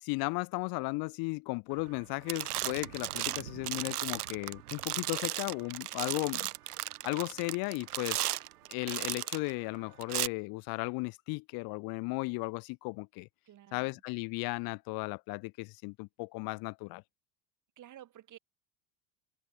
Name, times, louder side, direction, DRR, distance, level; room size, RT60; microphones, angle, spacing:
voice 1, 0.0-6.5 7.0-8.2 8.7-13.3 13.7-17.0, left 27 dB, 50° left, 0.9 m, -35 dB
sound 1, 1.8-2.0 2.3-9.5 10.0-10.3, right 14 dB, 80° right, 1.3 m, -36 dB
voice 2, 13.4-14.0 17.8-18.4, right 12 dB, 40° right, 4.3 m, -52 dB
hypercardioid pair, 80°, 45 cm